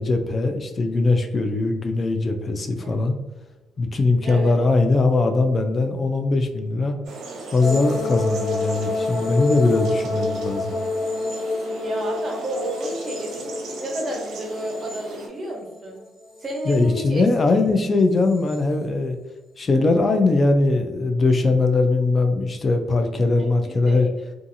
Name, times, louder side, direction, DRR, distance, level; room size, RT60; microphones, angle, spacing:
voice 1, 0.0-3.2 3.8-7.0 7.5-10.7 16.7-19.2 19.6-24.1, left 3 dB, 35° left, 5 dB, 0.3 m, -20 dB
voice 2, 4.2-4.5 11.8-16.0 16.4-17.3 23.4-24.1, right 1 dB, 40° right, 0 dB, 0.9 m, -31 dB
sound 1, 7.0-15.3, right 2 dB, 75° right, 0.6 m, -37 dB
sound 2, 7.6-15.8 16.2-17.0 18.3-18.6, left 2 dB, 70° left, 0.9 m, -28 dB
2.6 x 2.4 x 2.6 m, 1.1 s
cardioid pair, 90°, 0 cm